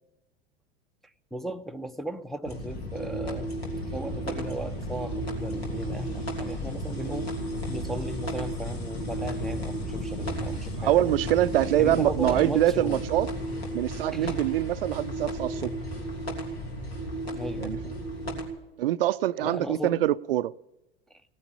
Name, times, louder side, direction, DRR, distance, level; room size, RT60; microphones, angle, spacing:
voice 1, 1.3-3.5 3.9-7.4 7.7-11.1 11.7-13.0 14.1-14.4 17.3-17.8 19.4-20.0 21.1-21.2, right 1 dB, ahead, 0.6 m, -36 dB
sound 1, 2.4-18.4, equal, 80° left, 3.1 m, -33 dB
voice 2, 10.8-13.3 13.7-15.7 17.6-17.8 18.8-20.5, right 13 dB, 65° right, 0.5 m, -24 dB
17.5 x 9.5 x 8.6 m
figure-of-eight pair, 80°, 31 cm